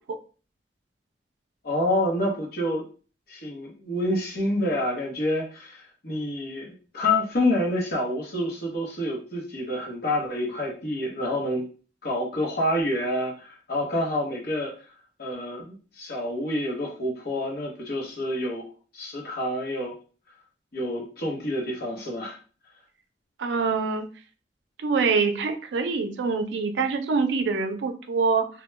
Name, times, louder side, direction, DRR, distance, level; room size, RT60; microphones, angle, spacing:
voice 1, 1.6-2.9 3.3-11.7 12.0-14.7 15.2-19.9 20.7-22.4, left 1 dB, 60° left, -1 dB, 0.8 m, -28 dB
voice 2, 23.4-24.1 24.8-28.5, right 4 dB, 80° right, 6 dB, 0.4 m, -25 dB
2.2 x 2.1 x 3.1 m, 0.38 s
head